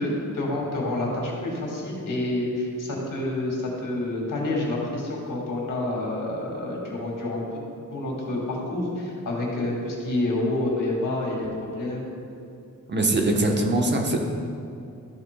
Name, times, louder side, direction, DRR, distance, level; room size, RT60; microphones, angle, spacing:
voice 1, 0.0-7.4 7.9-12.0, left 1 dB, 80° left, -2 dB, 2.1 m, -28 dB
voice 2, 12.9-14.2, right 2 dB, 35° right, 2 dB, 1.0 m, -22 dB
13.0 x 8.1 x 2.2 m, 2.6 s
wide cardioid pair, 130°, 31 cm